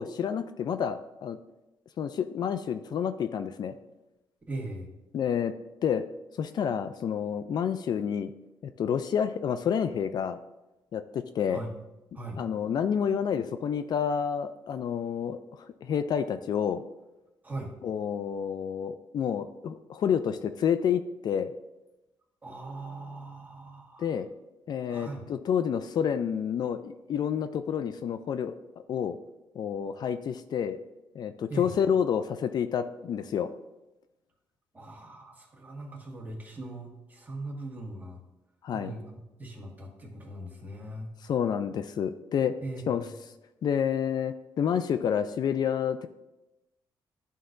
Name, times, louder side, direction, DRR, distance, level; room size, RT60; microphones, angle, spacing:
voice 1, 0.0-1.4 2.0-3.7 5.1-5.5 5.8-6.0 6.4-8.3 8.6-10.4 10.9-11.6 12.4-16.8 17.8-21.5 24.0-24.3 24.7-28.6 28.9-29.2 29.6-30.8 31.2-33.5 38.6-38.9 41.2-42.5 42.9-43.0 43.6-46.1, left 8 dB, 60° left, 10 dB, 0.3 m, -29 dB
voice 2, 4.5-4.9 11.5-11.7 12.1-12.4 17.4-17.7 22.4-24.1 24.9-25.2 31.5-31.7 34.7-38.2 38.7-41.1 42.6-43.1, right 2 dB, 20° right, -1 dB, 1.6 m, -40 dB
11.0 x 3.9 x 2.5 m, 0.98 s
cardioid pair, 90°, 8 cm